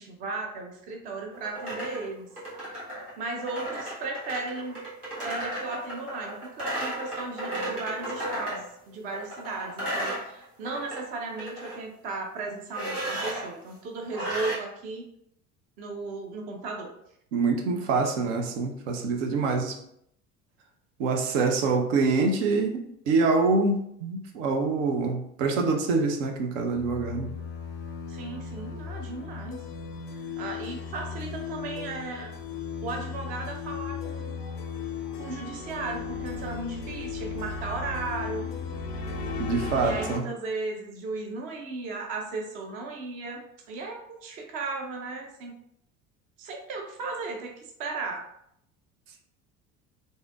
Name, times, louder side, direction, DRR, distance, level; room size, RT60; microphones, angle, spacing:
voice 1, 0.0-2.3 3.2-4.8 5.2-15.1 15.8-16.9 28.1-29.6 30.4-32.3 32.8-34.4 35.2-38.5 39.8-45.5 46.4-48.2, right 3 dB, 20° right, 2 dB, 0.3 m, -36 dB
sound 1, 1.3-8.7 9.1-11.0 11.3-11.8 12.7-13.5 14.1-14.6, right 1 dB, 90° right, 1.0 m, -34 dB
voice 2, 17.3-19.8 21.0-27.3 39.4-40.2, right 4 dB, 55° right, 4 dB, 0.6 m, -25 dB
sound 2, 26.8-40.2, left 6 dB, 50° left, 0.4 m, -36 dB
sound 3, 34.4-34.7 35.0-40.0, right 2 dB, ahead, 0.7 m, -41 dB
3.4 x 2.7 x 2.3 m, 0.72 s
figure-of-eight pair, 70°, 44 cm